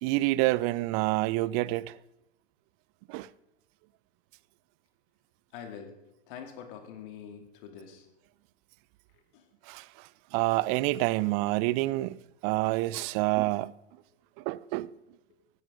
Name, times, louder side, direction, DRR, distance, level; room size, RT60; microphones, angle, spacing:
voice 1, 0.0-2.0 3.1-3.3 9.7-12.2 12.4-13.7 14.4-14.9, right 19 dB, 35° right, 0.4 m, -28 dB
voice 2, 5.5-6.0 6.3-8.1 9.3-9.4, left 7 dB, 50° left, 2.4 m, -44 dB
16.0 x 10.5 x 3.8 m
figure-of-eight pair, 95°, 33 cm